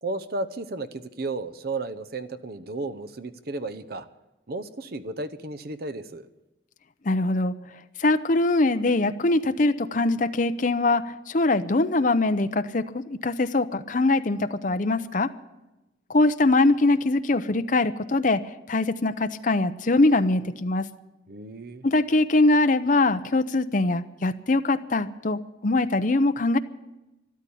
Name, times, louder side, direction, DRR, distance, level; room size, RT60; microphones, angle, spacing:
voice 1, 0.0-4.1 4.5-6.3 21.3-21.9, right 2 dB, 55° right, 10 dB, 0.8 m, -33 dB
voice 2, 7.0-7.5 8.0-15.3 16.1-18.4 18.7-20.9 21.8-26.6, left 2 dB, 45° left, 10 dB, 0.7 m, -22 dB
13.0 x 12.5 x 8.5 m, 1.0 s
head